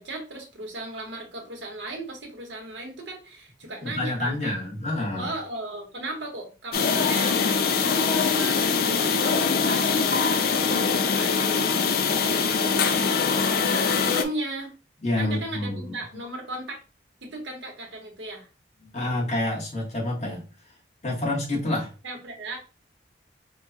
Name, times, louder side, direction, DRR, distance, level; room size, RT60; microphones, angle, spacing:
voice 1, 0.0-4.5 5.2-10.0 10.7-12.0 12.2-14.7 15.2-16.8 17.2-18.5 22.0-22.6, right 2 dB, 80° right, 1 dB, 1.2 m, -36 dB
voice 2, 3.8-5.3 15.0-16.0 18.9-20.4 21.0-21.9, left 1 dB, 35° left, -3 dB, 1.3 m, -28 dB
sound 1, 6.7-14.3, left 5 dB, 55° left, 0.4 m, -23 dB
4.5 x 2.3 x 2.7 m, 0.33 s
head